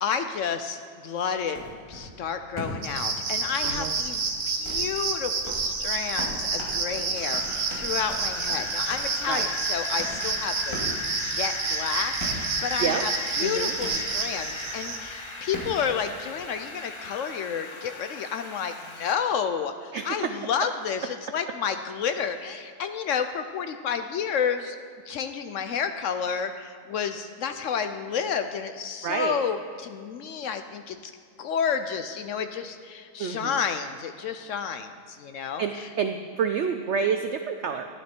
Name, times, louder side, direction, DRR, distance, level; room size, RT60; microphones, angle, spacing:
voice 1, 0.0-1.6 1.9-10.8 11.2-13.1 13.4-24.8 25.1-31.0 31.4-35.9, left 7 dB, 70° left, 8 dB, 0.7 m, -30 dB
sound 1, 1.2-2.1 2.6-2.9 3.6-3.8 4.1-4.2 4.6-4.8 5.4-5.6 6.2-6.3 6.6-8.2 8.5-8.6 8.9-9.1 10.0-10.1 10.7-10.9 11.5-11.6 12.2-12.5 13.6-14.1 15.5-15.8, left 1 dB, 15° left, 2.4 m, -37 dB
sound 2, 2.8-15.0, right 4 dB, 55° right, 1.5 m, -29 dB
voice 2, 3.6-3.9 9.3-9.5 12.8-13.1 13.4-13.7 19.9-20.3 29.0-29.4 33.2-33.6 35.4-37.9, right 6 dB, 80° right, 6 dB, 0.6 m, -28 dB
Wind, 7.2-19.1, left 2 dB, 35° left, 0.4 m, -37 dB
11.5 x 11.0 x 4.4 m, 2.2 s
omnidirectional pair, 1.8 m